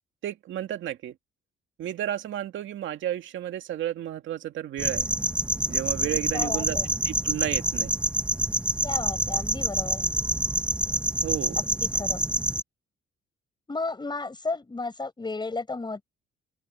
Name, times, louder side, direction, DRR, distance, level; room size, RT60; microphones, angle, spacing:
voice 1, 0.2-1.2 1.8-5.1 5.7-6.8 7.0-7.9 11.2-11.6, right 11 dB, 75° right, 2.1 m, -32 dB
sound 1, 4.8-12.6, right 1 dB, 5° right, 0.7 m, -27 dB
voice 2, 6.3-6.9 8.8-10.1 11.8-12.2 13.7-16.0, left 3 dB, 20° left, 6.4 m, -33 dB
open air
cardioid pair, 90°, 20 cm